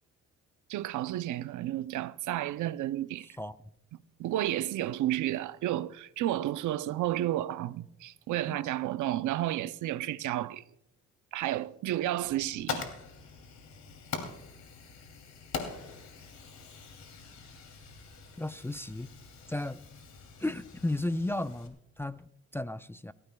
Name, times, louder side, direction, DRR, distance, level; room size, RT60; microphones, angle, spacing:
voice 1, 0.7-3.3 4.2-10.6 11.3-12.9, right 13 dB, 75° right, 0.6 m, -31 dB
Fire, 12.2-21.7, left 5 dB, 65° left, 2.9 m, -43 dB
voice 2, 18.4-19.1 19.5-19.9 20.4-23.1, left 1 dB, 10° left, 0.4 m, -34 dB
23.0 x 15.0 x 2.3 m
cardioid pair, 90°, 30 cm